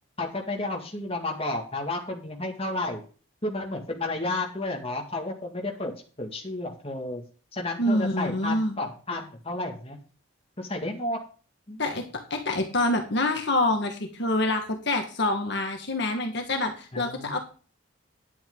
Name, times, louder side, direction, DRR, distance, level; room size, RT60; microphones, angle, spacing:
voice 1, 0.2-3.0 3.4-5.9 6.2-7.2 7.5-10.0 10.6-11.2 11.7-11.8 16.9-17.4, left 2 dB, 30° left, 2 dB, 2.2 m, -32 dB
voice 2, 7.8-8.8 11.8-17.4, left 2 dB, 55° left, 4 dB, 1.7 m, -26 dB
10.5 x 8.9 x 3.9 m, 0.38 s
head